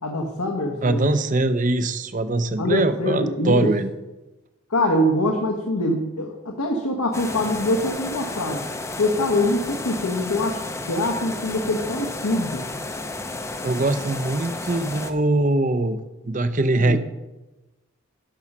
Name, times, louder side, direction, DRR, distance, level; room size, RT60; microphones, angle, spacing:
voice 1, 0.0-1.1 2.6-3.7 4.7-8.6 9.0-10.6 10.9-12.6 16.8-17.0, left 1 dB, 90° left, 2 dB, 1.2 m, -24 dB
voice 2, 0.8-3.9 13.6-16.0 16.2-17.0, right 2 dB, 35° right, 12 dB, 0.6 m, -22 dB
sound 1, 7.1-15.1, left 2 dB, 15° left, 0.5 m, -32 dB
11.5 x 5.5 x 6.0 m, 1.1 s
head